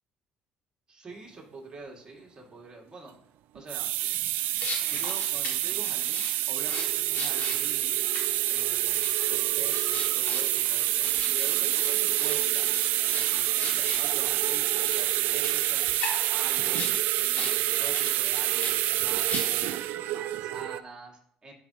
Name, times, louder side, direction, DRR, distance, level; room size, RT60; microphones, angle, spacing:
voice 1, 0.9-3.1 3.5-3.9 4.8-8.1 8.5-12.7 13.1-19.8 20.1-21.5, right 2 dB, 30° right, -2 dB, 2.4 m, -46 dB
sound 1, 3.6-20.8, right 15 dB, 80° right, 0.3 m, -27 dB
sound 2, 4.6-14.1 14.6-17.0 17.3-17.5 17.8-19.8, left 4 dB, 70° left, 2.2 m, -40 dB
12.0 x 4.3 x 3.1 m, 0.63 s
supercardioid pair, 85°, 3 cm